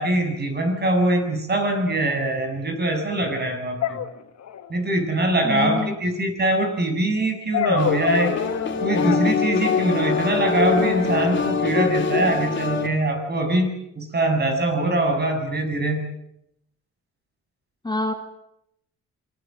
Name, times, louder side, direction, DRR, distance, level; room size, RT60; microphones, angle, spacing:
voice 1, 0.0-4.0 4.7-8.4 8.8-16.0, right 2 dB, 35° right, 5 dB, 7.2 m, -23 dB
sound 1, 2.1-2.2 3.8-4.7 7.5-9.2, left 10 dB, 60° left, 1.7 m, -26 dB
voice 2, 5.5-5.9 17.8-18.1, left 2 dB, 15° left, 5 dB, 1.9 m, -25 dB
sound 2, 7.8-12.9, left 6 dB, 40° left, 3.0 m, -24 dB
27.0 x 21.0 x 7.7 m, 0.79 s
cardioid pair, 90°, 30 cm